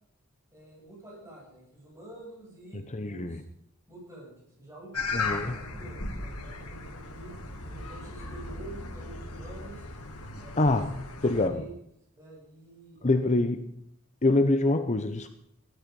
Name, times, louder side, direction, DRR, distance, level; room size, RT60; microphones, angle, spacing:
voice 1, 0.5-3.4 3.9-4.9 5.2-7.3 7.6-9.9 10.4-10.8 11.2-11.7 12.1-13.5, right 2 dB, 15° right, -5 dB, 7.3 m, -48 dB
voice 2, 2.7-3.4 5.1-5.6 10.6-10.9 11.2-11.6 13.0-13.7 14.2-15.3, left 2 dB, 30° left, 8 dB, 0.8 m, -25 dB
sound 1, 4.9-11.5, left 3 dB, 85° left, 2.6 m, -37 dB
16.0 x 12.5 x 5.4 m, 0.72 s
head